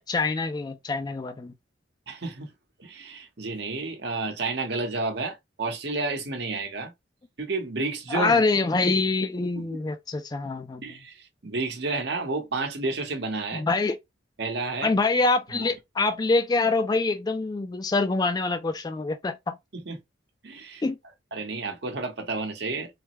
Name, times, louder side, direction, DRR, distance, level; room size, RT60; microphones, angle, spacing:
voice 1, 0.0-1.5 8.1-10.8 13.5-14.0 14.8-19.6 20.8-21.0, left 3 dB, 20° left, 0.3 m, -25 dB
voice 2, 2.1-2.5 2.8-6.9 7.4-8.4 9.6-9.7 10.8-13.6 14.4-14.9 15.5-15.7 19.7-20.0 20.4-20.8 21.3-22.9, right 3 dB, 65° right, 0.9 m, -31 dB
3.3 x 2.1 x 3.0 m
head